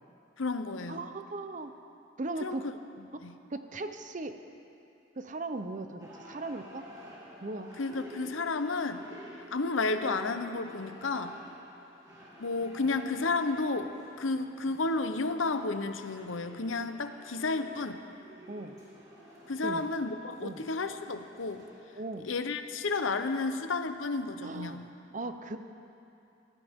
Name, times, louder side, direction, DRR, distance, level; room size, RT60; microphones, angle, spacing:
voice 1, 0.4-1.1 2.4-2.7 3.2-3.4 7.8-9.1 9.5-11.4 12.4-18.0 19.5-21.6 22.2-24.9, left 3 dB, 90° left, 9 dB, 0.9 m, -32 dB
voice 2, 0.9-1.7 2.2-2.7 3.5-4.4 5.2-6.9 7.4-7.7 18.5-18.7 19.6-19.8 20.4-20.6 22.0-22.3 24.4-24.8 25.1-25.6, right 2 dB, 40° right, 8 dB, 0.8 m, -38 dB
sound 1, 6.0-22.1, right 1 dB, 20° right, 3.1 m, -51 dB
23.5 x 16.0 x 3.7 m, 2.8 s
head